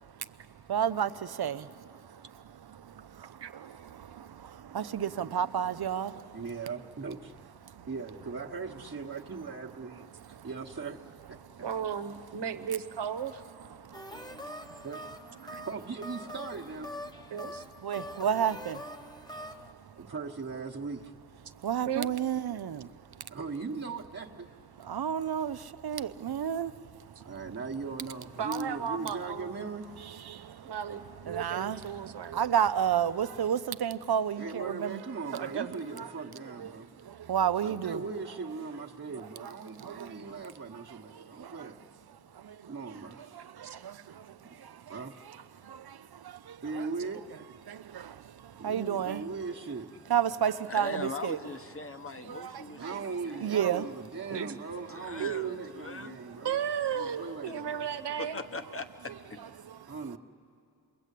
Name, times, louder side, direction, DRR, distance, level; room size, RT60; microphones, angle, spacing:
voice 1, 0.7-1.7 2.7-6.3 10.4-10.5 14.3-14.4 15.5-15.7 17.8-18.8 21.6-22.9 24.8-26.7 30.3-30.7 31.3-35.0 37.0-38.0 39.8-40.1 41.2-41.6 42.4-42.6 43.6-44.8 45.6-46.0 46.2-46.8 47.7-48.2 48.6-49.2 50.1-51.4 52.3-53.0 53.4-53.8, right 9 dB, 65° right, 0.7 m, -31 dB
voice 2, 6.3-7.3 7.9-11.0 11.3-11.4 14.8-15.2 15.6-16.9 20.0-21.1 23.3-24.5 27.2-29.9 34.3-36.9 37.6-41.7 42.7-43.4 44.4-45.2 46.6-47.3 48.6-50.0 52.8-56.6 56.9-57.9 59.9-60.2, right 4 dB, 40° right, 1.3 m, -39 dB
voice 3, 11.6-13.3 15.4-15.6 17.3-17.6 21.9-22.1 28.4-29.7 30.6-32.5 35.3-35.8 43.6-44.0 54.3-54.6 55.2-55.6 56.4-58.4, right 8 dB, 85° right, 1.1 m, -35 dB
sound 1, 13.9-19.7, left 1 dB, 10° left, 1.1 m, -44 dB
voice 4, 50.7-53.5 54.9-56.2 57.4-57.5 58.2-59.4, left 2 dB, 35° left, 1.3 m, -40 dB
28.5 x 22.5 x 8.4 m
cardioid pair, 60°, 40 cm